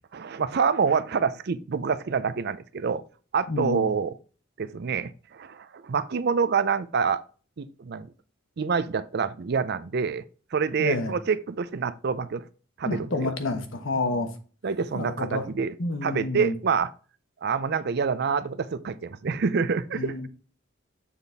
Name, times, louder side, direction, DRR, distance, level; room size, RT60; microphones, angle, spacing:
voice 1, 0.1-3.0 3.3-4.1 4.6-7.2 7.6-8.1 8.6-10.2 10.5-12.5 12.8-13.3 14.6-15.7 16.0-16.9 17.4-20.3, right 5 dB, 55° right, 0.5 m, -27 dB
voice 2, 3.5-3.9 10.8-11.1 12.8-14.3 14.9-15.5 15.8-16.5 19.9-20.3, left 2 dB, 70° left, 1.2 m, -29 dB
7.1 x 4.1 x 3.4 m
head